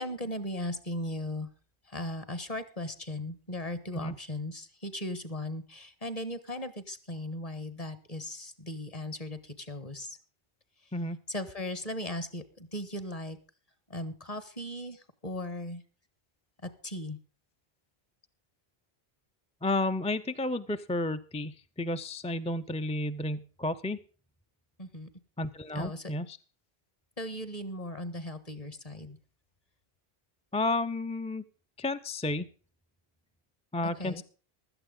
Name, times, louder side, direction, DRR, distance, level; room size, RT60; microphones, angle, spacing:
voice 1, 0.0-1.5 1.8-10.2 10.8-10.9 11.3-13.4 13.9-15.8 16.6-17.2 24.8-25.1 25.7-26.1 27.2-29.2 33.8-34.2, left 1 dB, 35° left, 12 dB, 1.5 m, -37 dB
voice 2, 19.6-24.0 25.4-26.4 30.5-31.4 31.8-32.5 33.7-34.2, left 2 dB, 10° left, 9 dB, 0.3 m, -32 dB
16.0 x 12.0 x 3.8 m, 0.37 s
omnidirectional pair, 1.0 m